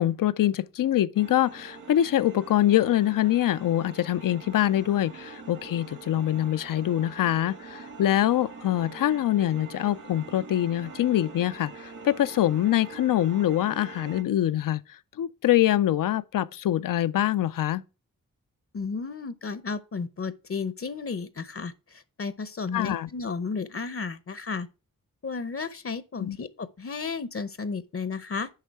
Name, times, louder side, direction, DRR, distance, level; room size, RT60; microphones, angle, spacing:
voice 1, 0.0-17.8 22.7-23.1 26.2-26.4, left 12 dB, 75° left, 0.5 m, -24 dB
sound 1, 1.2-14.2, right 4 dB, 60° right, 1.7 m, -44 dB
voice 2, 18.7-24.7 25.2-28.5, left 4 dB, 40° left, 0.7 m, -33 dB
10.5 x 3.6 x 4.7 m
cardioid pair, 55°, 33 cm